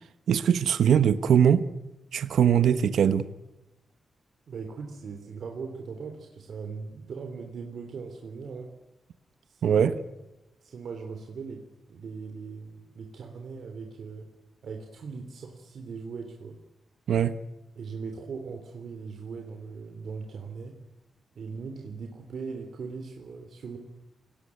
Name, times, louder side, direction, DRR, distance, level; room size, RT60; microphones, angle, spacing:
voice 1, 0.3-1.7 2.1-3.3 9.6-9.9 17.1-17.4, right 8 dB, 85° right, 12 dB, 1.1 m, -21 dB
voice 2, 4.5-8.7 9.4-9.9 10.6-14.3 14.6-16.6 17.7-20.8 21.3-23.8, right 5 dB, 60° right, 4 dB, 3.4 m, -39 dB
29.5 x 19.5 x 9.7 m, 0.96 s
wide cardioid pair, 170°, 0 cm